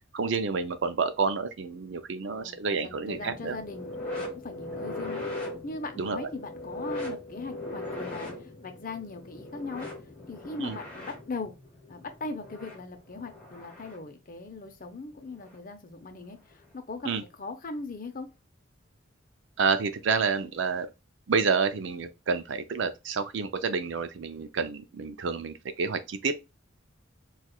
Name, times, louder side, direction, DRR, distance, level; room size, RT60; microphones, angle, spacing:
voice 1, 0.1-3.6 6.0-6.3 10.6-10.8 17.0-17.2 19.6-20.9 21.3-26.3, right 5 dB, 60° right, 0.4 m, -29 dB
voice 2, 2.2-5.3 5.6-9.9 10.3-11.5 11.9-17.1 17.4-18.3, left 3 dB, 40° left, 0.6 m, -39 dB
sound 1, 3.1-14.1 15.4-15.6 16.5-16.6, left 1 dB, 5° left, 1.1 m, -39 dB
4.3 x 2.4 x 2.3 m
head